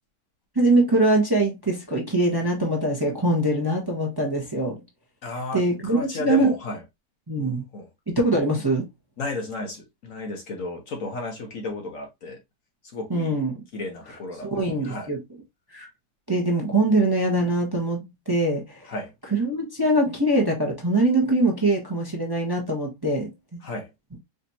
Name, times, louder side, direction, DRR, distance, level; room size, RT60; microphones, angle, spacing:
voice 1, 0.5-4.8 5.5-6.5 7.3-7.7 8.1-8.8 13.1-13.6 14.4-15.2 15.7-15.9 16.3-18.9 19.3-23.6, right 2 dB, 15° right, 0.9 m, -23 dB
voice 2, 5.2-6.8 7.4-7.9 9.2-12.4 12.8-13.4 13.7-15.1 18.9-19.1 23.6-23.9, left 2 dB, 55° left, 1.2 m, -33 dB
5.1 x 3.0 x 2.7 m
omnidirectional pair, 1.8 m